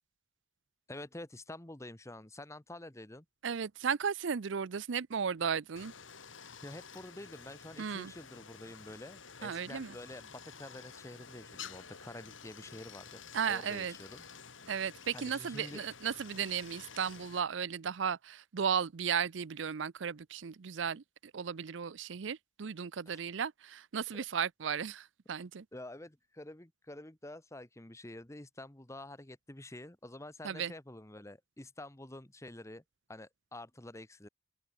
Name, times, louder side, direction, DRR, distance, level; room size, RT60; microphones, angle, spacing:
voice 1, 0.9-3.2 6.6-13.2 13.5-14.2 15.1-15.9 23.1-23.2 24.1-24.2 25.7-32.8 33.1-34.3, left 1 dB, 15° left, 1.2 m, -48 dB
voice 2, 3.4-5.9 7.8-8.1 9.4-9.9 13.3-14.0 14.7-21.0 21.3-25.6 30.4-30.7, right 7 dB, 70° right, 0.5 m, -35 dB
Stream, 5.8-17.4, left 6 dB, 85° left, 4.6 m, -51 dB
open air
head